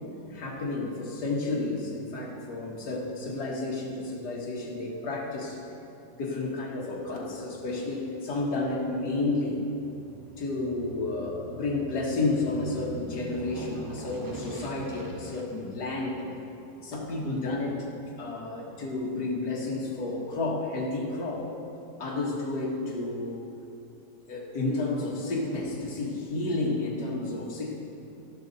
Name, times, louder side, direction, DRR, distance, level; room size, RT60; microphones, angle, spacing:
voice 1, 0.2-5.6 6.2-9.6 10.4-16.2 16.8-17.9 18.2-21.5 22.0-23.4 24.3-27.7, left 2 dB, 75° left, -3 dB, 2.1 m, -31 dB
Aircraft, 7.2-19.3 19.7-19.8, right 1 dB, 30° right, 0.3 m, -46 dB
13.0 x 12.0 x 4.1 m, 2.8 s
omnidirectional pair, 1.7 m